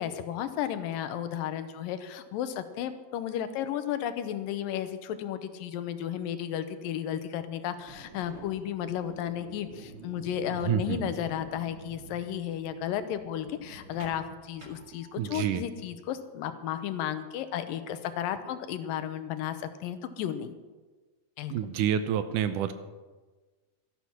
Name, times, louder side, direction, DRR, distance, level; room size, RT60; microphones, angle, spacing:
voice 1, 0.0-20.5 21.4-21.7, left 10 dB, 85° left, 10 dB, 2.6 m, -33 dB
sound 1, 7.7-15.5, right 2 dB, 40° right, 2.8 m, -48 dB
voice 2, 10.7-11.1 15.2-15.6 21.5-22.7, right 9 dB, 75° right, 11 dB, 2.1 m, -28 dB
13.5 x 11.5 x 6.0 m, 1.3 s
omnidirectional pair, 4.0 m